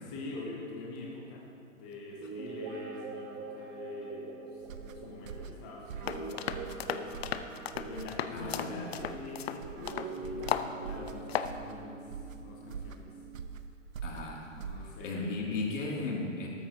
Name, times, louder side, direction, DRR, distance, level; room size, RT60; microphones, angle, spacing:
voice 1, 0.0-1.4 1.7-7.3 7.8-13.2 14.5-16.1, left 2 dB, 10° left, -2 dB, 0.3 m, -44 dB
Guitar, 2.1-9.3 9.8-13.5, right 3 dB, 20° right, 1.0 m, -44 dB
sound 1, 4.6-15.2, right 6 dB, 85° right, 0.8 m, -45 dB
sound 2, 6.0-10.1 10.5-10.7 11.1-11.5, left 10 dB, 50° left, 0.6 m, -35 dB
voice 2, 8.3-8.8 14.0-14.4 14.8-16.5, left 3 dB, 70° left, -2 dB, 2.6 m, -36 dB
13.0 x 13.0 x 2.8 m, 2.5 s
hypercardioid pair, 135°, 39 cm